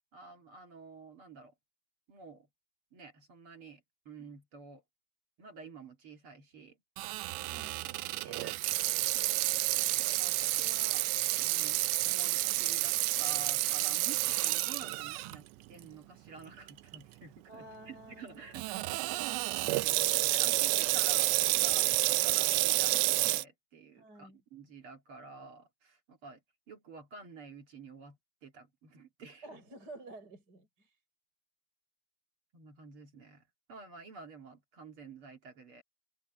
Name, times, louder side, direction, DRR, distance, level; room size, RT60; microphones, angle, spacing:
voice 1, 0.1-1.5 2.1-2.5 2.9-4.8 5.4-6.8 8.2-8.8 9.1-11.1 11.4-19.2 19.6-26.4 26.7-29.5 32.5-35.8, right 4 dB, 40° right, 2.1 m, -51 dB
Water tap faucet / Sink (filling or washing), 7.0-15.4 15.8-15.9 16.7-17.0 18.5-23.4, right 19 dB, 80° right, 2.8 m, -30 dB
voice 2, 7.5-7.9 17.5-19.5 24.0-24.4 29.4-31.0, right 2 dB, 20° right, 6.3 m, -52 dB
omnidirectional pair, 5.1 m